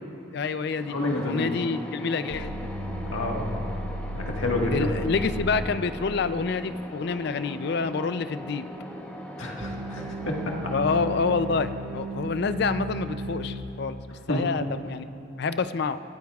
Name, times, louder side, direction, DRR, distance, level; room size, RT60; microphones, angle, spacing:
voice 1, 0.3-1.0 1.2-2.6 4.7-8.6 10.7-14.0 14.3-15.0 15.4-16.0, left 4 dB, 55° left, 12 dB, 0.4 m, -27 dB
sound 1, 0.7-14.4, equal, 10° left, 0.9 m, -40 dB
voice 2, 0.9-1.5 3.1-3.6 4.1-4.9 9.4-10.5 14.3-14.5, left 1 dB, 80° left, -1 dB, 1.6 m, -29 dB
sound 2, 2.3-5.7 9.6-13.6, equal, 85° right, 1.0 m, -34 dB
23.0 x 14.0 x 2.4 m, 2.7 s
head